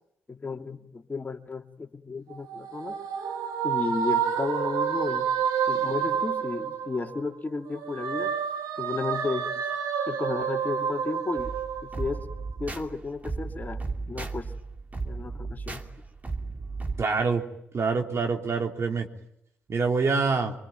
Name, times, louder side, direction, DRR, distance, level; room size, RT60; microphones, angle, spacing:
voice 1, 0.3-3.0 3.6-5.3 5.7-8.4 8.8-9.5 10.1-11.5 11.8-12.2 12.6-13.8 14.1-14.5 15.0-15.8, left 4 dB, 30° left, 4 dB, 2.7 m, -33 dB
sound 1, 2.3-7.3 7.7-12.4, right 7 dB, 70° right, 2.3 m, -29 dB
sound 2, 11.4-17.0, right 3 dB, 25° right, 2.8 m, -35 dB
voice 2, 17.0-17.4 17.7-19.1 19.7-20.5, right 4 dB, 45° right, 3 dB, 3.6 m, -25 dB
25.0 x 24.5 x 9.2 m, 0.77 s
hypercardioid pair, 45°, 6 cm